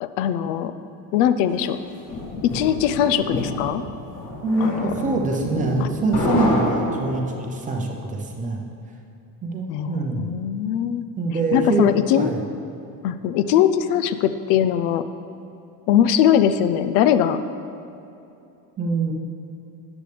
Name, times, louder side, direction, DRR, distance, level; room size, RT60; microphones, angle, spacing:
voice 1, 0.0-0.7 1.1-1.8 2.5-3.9 4.6-4.9 5.8-5.9 9.7-11.1 11.5-12.3 13.0-15.0 15.9-17.4, left 10 dB, 70° left, 11 dB, 0.6 m, -20 dB
sound 1, 1.6-7.5, left 2 dB, 35° left, 1.8 m, -28 dB
voice 2, 4.4-8.6 9.4-10.3 11.2-11.8 12.2-12.4 18.8-19.1, right 3 dB, 20° right, 1 dB, 0.6 m, -24 dB
13.5 x 9.4 x 3.4 m, 2.7 s
cardioid pair, 175°, 44 cm